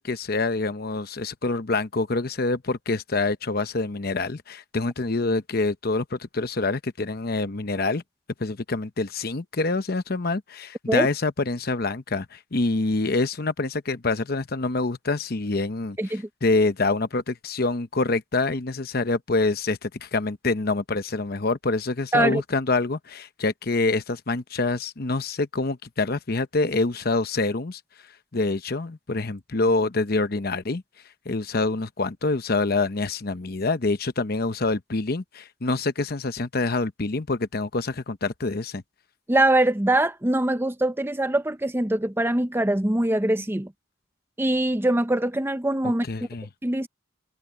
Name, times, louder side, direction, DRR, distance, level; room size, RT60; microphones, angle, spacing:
voice 1, 0.0-8.0 8.4-16.0 16.4-27.8 28.3-30.8 31.3-38.8 45.8-46.5, left 3 dB, 50° left, 0.9 m, -26 dB
voice 2, 39.3-43.7 44.4-46.0 46.6-46.9, right 1 dB, 10° right, 0.6 m, -23 dB
head